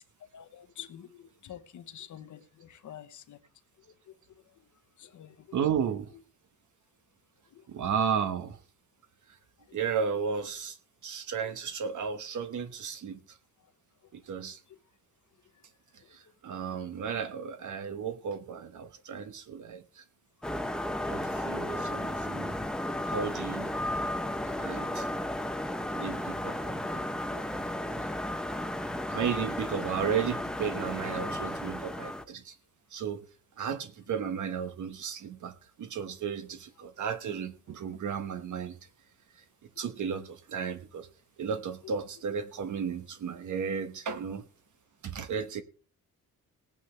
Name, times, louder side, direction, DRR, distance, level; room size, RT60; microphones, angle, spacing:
voice 1, 0.3-3.4 3.8-3.9 5.0-5.6 7.5-7.6 9.7-9.8 10.1-10.2 11.4-11.5 14.7-14.8 41.8-41.9 44.1-44.2, left 10 dB, 65° left, 1.0 m, -49 dB
voice 2, 5.5-6.1 7.7-8.6 9.7-10.8 11.0-13.2 14.1-14.6 16.1-20.0 21.1-22.5 23.1-23.7 24.6-25.1 25.9-27.0 27.3-27.6 29.1-32.5 32.9-33.2 33.6-35.5 35.8-38.8 39.8-41.1 41.4-44.4 45.0-45.6, right 7 dB, 65° right, 1.2 m, -34 dB
sound 1, 20.4-32.3, left 1 dB, ahead, 0.8 m, -34 dB
19.5 x 9.0 x 3.3 m
cardioid pair, 140°, 33 cm